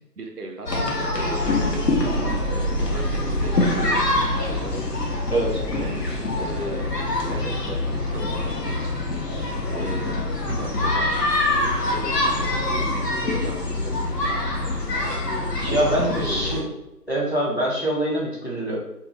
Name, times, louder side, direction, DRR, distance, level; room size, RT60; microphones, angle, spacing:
voice 1, 0.0-1.6 2.5-4.9 5.7-6.1 6.4-7.0 7.3-9.1 9.7-11.1 11.9-14.0 15.0-15.3 15.6-16.7, right 2 dB, 70° right, 3 dB, 0.6 m, -37 dB
sound 1, 0.7-16.6, left 2 dB, 75° left, 0.8 m, -25 dB
sound 2, 1.4-15.2 15.6-16.5, right 1 dB, ahead, 0.3 m, -36 dB
voice 2, 2.0-2.4 5.3-5.6 15.6-16.6 17.1-18.8, right 1 dB, 40° left, -5 dB, 0.6 m, -24 dB
2.5 x 2.1 x 2.9 m, 0.89 s
figure-of-eight pair, 170°, 49 cm